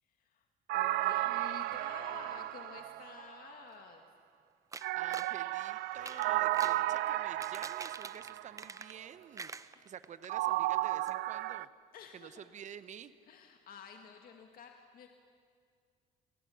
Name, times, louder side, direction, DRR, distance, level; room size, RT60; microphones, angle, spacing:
voice 1, 0.1-0.4 0.7-4.1 9.7-9.9 11.9-12.5 13.3-15.1, left 7 dB, 60° left, 3 dB, 1.9 m, -51 dB
sound 1, 0.7-3.5 4.8-8.6 10.3-11.6, right 16 dB, 80° right, 0.6 m, -33 dB
sound 2, 4.7-5.4 5.9-6.8 7.2-9.1 9.3-10.3 10.6-10.7 11.1-11.2, right 4 dB, 20° right, 0.7 m, -46 dB
voice 2, 5.0-11.7 12.1-13.1, right 8 dB, 45° right, 13 dB, 1.0 m, -49 dB
29.5 x 19.0 x 7.2 m, 2.2 s
cardioid pair, 110°, 17 cm